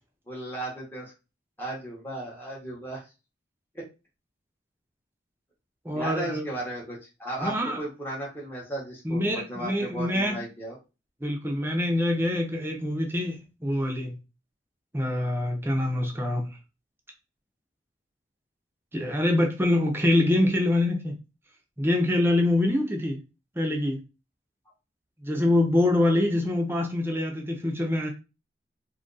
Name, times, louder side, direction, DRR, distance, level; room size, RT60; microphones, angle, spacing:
voice 1, 0.3-1.1 1.6-3.0 3.7-3.8 5.9-10.8, right 1 dB, 10° left, 0.9 m, -35 dB
voice 2, 5.8-6.4 7.4-7.8 9.0-10.4 11.2-14.1 14.9-16.4 18.9-21.2 21.8-23.2 23.5-24.0 25.2-28.1, left 1 dB, 15° right, 0.7 m, -25 dB
2.8 x 2.5 x 3.9 m
head